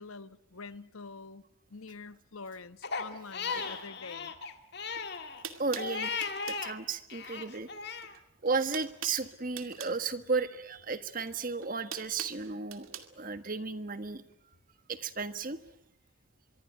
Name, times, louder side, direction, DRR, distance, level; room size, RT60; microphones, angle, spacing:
voice 1, 0.0-1.4 1.7-4.3, left 4 dB, 85° left, 1.1 m, -46 dB
Crying sobbing, 2.8-6.7 7.1-8.1, left 5 dB, 50° left, 1.9 m, -37 dB
voice 2, 3.5-3.8 5.6-6.2 6.5-7.7 8.4-14.2 14.9-15.6, right 4 dB, 40° right, 1.6 m, -34 dB
sound 1, 4.9-5.0 5.4-6.7 7.9-8.2 8.4-10.0 11.2-13.1, right 8 dB, 80° right, 2.4 m, -43 dB
25.0 x 23.5 x 9.2 m
head